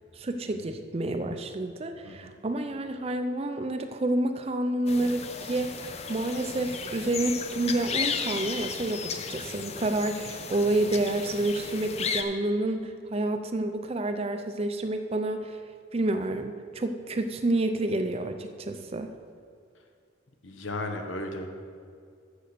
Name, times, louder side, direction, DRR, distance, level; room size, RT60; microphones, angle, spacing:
voice 1, 0.2-15.6 15.9-19.1, right 2 dB, 30° right, 7 dB, 0.5 m, -29 dB
sound 1, 4.9-12.2, left 5 dB, 30° left, 0.5 m, -34 dB
voice 2, 20.4-21.5, left 2 dB, 80° left, 4 dB, 1.0 m, -35 dB
7.6 x 6.7 x 6.7 m, 2.3 s
head